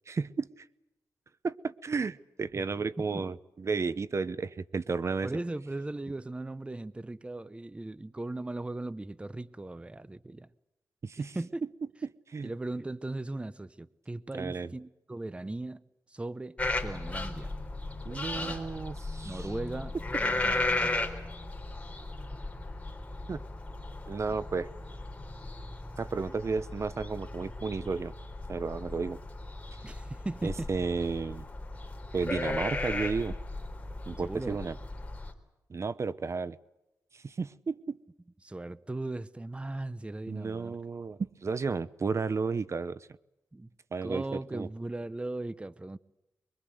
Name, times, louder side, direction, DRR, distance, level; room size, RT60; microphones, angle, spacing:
voice 1, 0.1-0.6 1.4-5.3 11.0-11.4 12.0-12.5 14.3-14.7 18.0-19.5 23.3-23.4 24.1-24.7 26.0-28.1 28.5-29.2 30.4-31.4 32.1-33.4 34.1-34.8 35.7-36.6 37.1-38.0 40.3-43.1 43.9-44.7, right 4 dB, 45° right, 0.9 m, -33 dB
voice 2, 5.2-10.5 11.3-11.6 12.4-15.8 16.1-17.5 18.3-18.8 19.2-21.3 29.8-30.7 34.2-34.6 38.4-40.8 43.5-43.7 44.0-46.0, right 2 dB, 15° right, 0.8 m, -38 dB
sound 1, 16.6-35.3, left 2 dB, 20° left, 3.9 m, -36 dB
24.0 x 23.5 x 8.0 m
cardioid pair, 85°, 7 cm